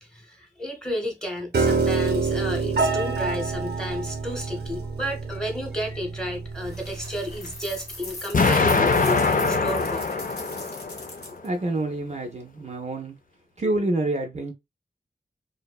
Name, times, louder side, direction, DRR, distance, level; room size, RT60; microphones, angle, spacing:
voice 1, 0.0-10.1, equal, 5° left, 0.9 m, -32 dB
Piano, 1.5-7.7, right 4 dB, 80° right, 0.7 m, -27 dB
sound 1, 6.6-11.5, left 2 dB, 85° left, 1.1 m, -40 dB
Explosion, 8.3-11.3, left 4 dB, 55° left, 0.4 m, -22 dB
voice 2, 11.4-13.2 13.6-14.5, right 2 dB, 40° right, 0.5 m, -27 dB
2.6 x 2.1 x 2.2 m
wide cardioid pair, 60°, 17 cm